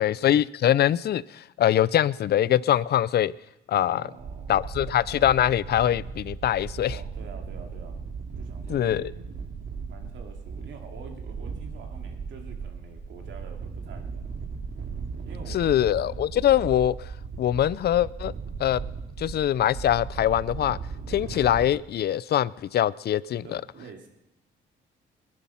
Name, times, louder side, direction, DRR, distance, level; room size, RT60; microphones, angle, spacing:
voice 1, 0.0-3.3 3.7-4.0 4.5-7.0 8.7-9.1 15.5-17.1 17.4-18.3 18.6-18.8 19.2-20.8 21.1-23.6, left 11 dB, 55° left, 0.5 m, -23 dB
voice 2, 3.8-4.7 6.9-8.0 8.3-9.2 9.9-14.3 15.2-16.0 23.4-24.1, right 5 dB, 70° right, 2.6 m, -46 dB
sound 1, 4.2-21.7, right 5 dB, 55° right, 2.4 m, -37 dB
20.5 x 11.0 x 5.7 m
cardioid pair, 90°, 20 cm